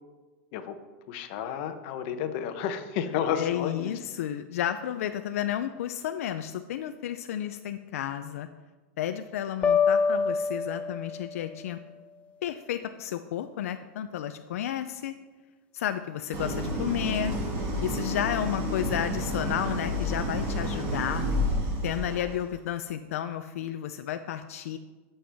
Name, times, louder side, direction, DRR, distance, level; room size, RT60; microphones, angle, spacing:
voice 1, 1.1-3.9, left 8 dB, 55° left, 8 dB, 0.8 m, -31 dB
voice 2, 3.4-8.5 9.0-11.8 12.4-15.1 15.7-17.4 17.8-21.3 21.8-24.8, left 10 dB, 90° left, 9 dB, 0.4 m, -32 dB
sound 1, 9.6-11.5, left 5 dB, 15° left, 0.4 m, -25 dB
Idling, 16.3-22.4, equal, 40° right, 1.8 m, -30 dB
12.5 x 5.6 x 3.4 m, 1.3 s
supercardioid pair, 150°, 8 cm